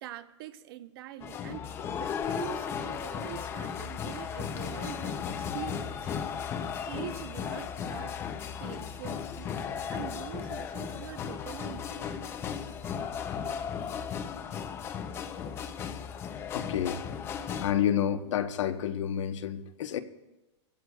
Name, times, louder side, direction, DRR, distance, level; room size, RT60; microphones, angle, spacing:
voice 1, 0.0-6.1 6.9-8.2 8.6-12.3, right 13 dB, 50° right, 0.8 m, -44 dB
sound 1, 1.2-17.7, left 7 dB, 15° left, 0.5 m, -36 dB
voice 2, 16.5-17.1 17.6-20.0, left 9 dB, 80° left, 1.1 m, -29 dB
22.0 x 15.5 x 2.3 m
supercardioid pair, 170°, 15 cm